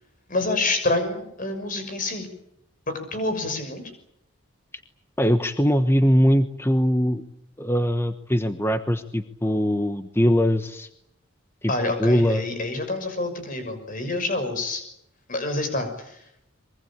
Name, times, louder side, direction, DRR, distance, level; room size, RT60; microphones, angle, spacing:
voice 1, 0.3-2.3 2.9-3.9 11.7-14.8 15.3-16.3, left 2 dB, 45° left, 7 dB, 6.3 m, -27 dB
voice 2, 5.2-7.2 7.6-10.9 11.6-11.7 12.0-12.5, equal, 10° left, 9 dB, 1.1 m, -21 dB
24.0 x 23.0 x 8.8 m, 0.76 s
head